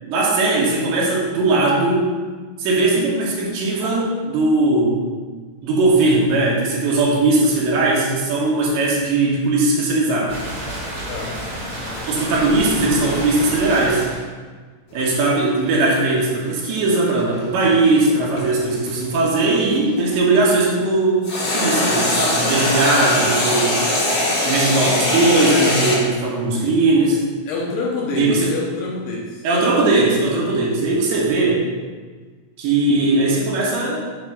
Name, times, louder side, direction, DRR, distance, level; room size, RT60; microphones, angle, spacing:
voice 1, 0.0-2.2 2.6-5.0 5.6-10.4 12.1-14.1 14.9-21.3 21.5-23.8 24.4-27.3 28.1-28.5 29.4-31.7 32.6-34.0, right 2 dB, 80° right, -4 dB, 3.6 m, -19 dB
sound 1, 10.3-14.2, equal, 40° right, 2.5 m, -30 dB
sound 2, 14.9-20.1 21.2-26.0, left 1 dB, 45° left, 1.5 m, -21 dB
voice 2, 27.5-29.4, left 4 dB, 75° left, -3 dB, 2.6 m, -26 dB
7.7 x 3.4 x 6.0 m, 1.5 s
omnidirectional pair, 5.0 m